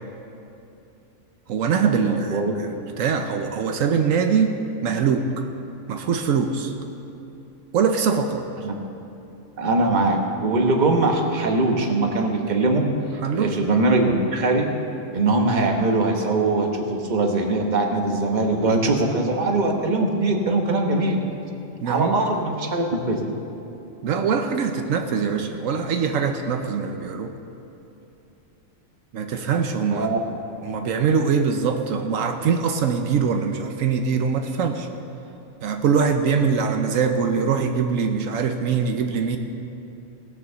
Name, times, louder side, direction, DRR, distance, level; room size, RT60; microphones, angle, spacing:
voice 1, 1.5-5.5 5.9-6.7 7.7-8.4 13.2-13.6 21.8-22.2 24.0-27.3 29.1-30.1 30.6-34.9 35.6-39.4, right 6 dB, 80° right, 6 dB, 1.1 m, -23 dB
voice 2, 2.0-2.5 8.6-8.7 9.6-12.8 13.4-14.7 15.1-21.2 21.8-23.3 29.9-30.2, right 2 dB, 35° right, 2 dB, 1.2 m, -21 dB
18.0 x 6.6 x 6.8 m, 2.8 s
omnidirectional pair, 1.4 m